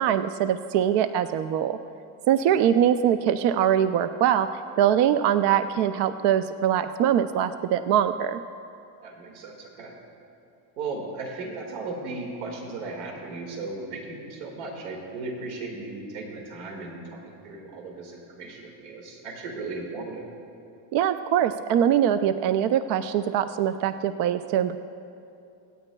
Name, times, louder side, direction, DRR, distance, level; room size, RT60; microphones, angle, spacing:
voice 1, 0.0-1.7 2.3-8.4 20.9-24.8, right 10 dB, 60° right, 11 dB, 0.5 m, -23 dB
voice 2, 9.0-9.9 10.8-20.2, right 3 dB, 80° right, 0 dB, 2.1 m, -36 dB
26.0 x 9.0 x 2.3 m, 2.7 s
supercardioid pair, 115°, 50 cm